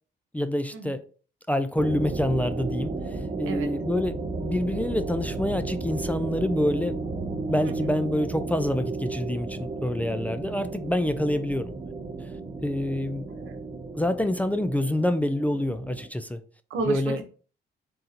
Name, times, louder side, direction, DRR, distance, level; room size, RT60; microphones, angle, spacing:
voice 1, 0.3-1.0 1.5-7.0 7.3-11.7 12.6-13.3 13.9-16.4 16.9-17.2, left 1 dB, 10° left, 0.3 m, -27 dB
sound 1, 1.8-16.1, right 3 dB, 30° right, 0.7 m, -33 dB
voice 2, 7.6-8.0 13.3-13.6 16.7-17.2, right 4 dB, 85° right, 0.9 m, -32 dB
3.8 x 2.6 x 4.2 m
cardioid pair, 90°, 20 cm